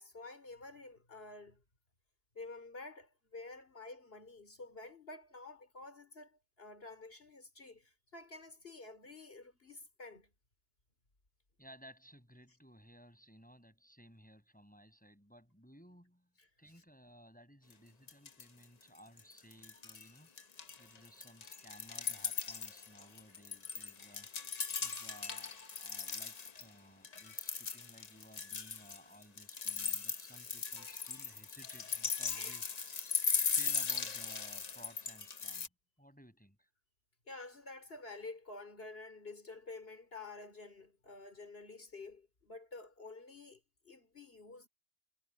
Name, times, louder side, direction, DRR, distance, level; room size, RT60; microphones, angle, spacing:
voice 1, 0.0-1.6 2.3-10.3 16.4-16.5 30.3-30.5 31.1-31.2 32.4-32.6 37.3-44.7, left 3 dB, 55° left, 4.0 m, -50 dB
voice 2, 11.6-16.3 16.6-20.3 20.8-24.3 24.8-32.6 33.5-35.7 36.0-36.7, equal, 5° left, 7.4 m, -58 dB
sound 1, 17.7-17.8 18.1-18.6 19.0-20.1 20.4-26.6 27.0-35.7, left 5 dB, 35° left, 0.9 m, -38 dB
omnidirectional pair, 1.2 m